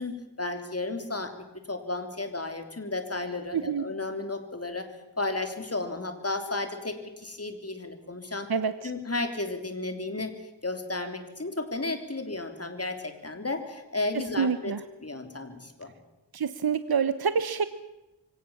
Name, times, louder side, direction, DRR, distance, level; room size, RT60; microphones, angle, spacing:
voice 1, 0.0-4.9 5.2-8.5 8.8-10.3 10.6-14.7 15.0-15.9, left 2 dB, 35° left, 7 dB, 3.3 m, -33 dB
voice 2, 3.5-3.8 8.5-8.8 14.4-14.8 16.3-17.7, right 6 dB, 55° right, 12 dB, 1.0 m, -26 dB
24.0 x 18.0 x 7.2 m, 1.0 s
cardioid pair, 50°, 43 cm